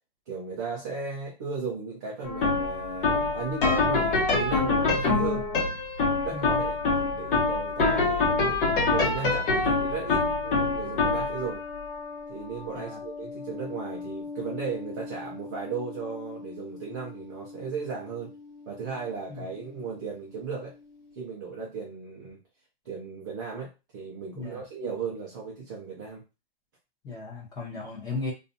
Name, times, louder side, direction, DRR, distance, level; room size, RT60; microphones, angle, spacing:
voice 1, 0.3-5.5 6.2-11.6 12.3-18.3 18.7-20.7 21.2-22.4 22.9-26.2, right 5 dB, 20° right, -4 dB, 0.3 m, -36 dB
sound 1, 2.2-19.4, left 3 dB, 60° left, 1.0 m, -27 dB
voice 2, 6.2-6.6 12.7-13.0 19.3-19.4 24.3-24.6 27.0-28.3, left 3 dB, 10° left, -2 dB, 0.7 m, -36 dB
2.4 x 2.3 x 2.6 m, 0.28 s
hypercardioid pair, 150°, 30 cm